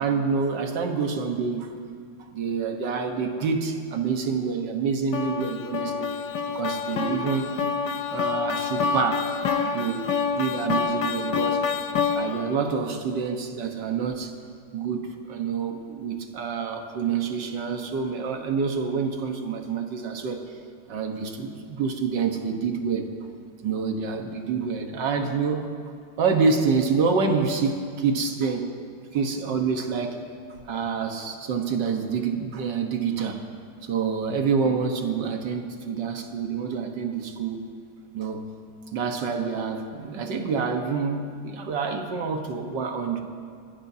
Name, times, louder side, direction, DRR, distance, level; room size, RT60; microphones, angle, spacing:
voice 1, 0.0-1.7 2.3-6.1 6.5-7.5 7.9-9.3 9.6-11.6 12.1-14.3 14.7-20.4 20.9-23.1 23.6-25.7 26.2-28.8 29.1-30.3 30.7-33.4 33.8-37.6 38.1-38.5 38.9-43.2, right 5 dB, 60° right, 4 dB, 1.8 m, -27 dB
sound 1, 5.1-12.6, left 5 dB, 60° left, 1.2 m, -27 dB
27.0 x 14.5 x 2.8 m, 2.2 s
omnidirectional pair, 2.3 m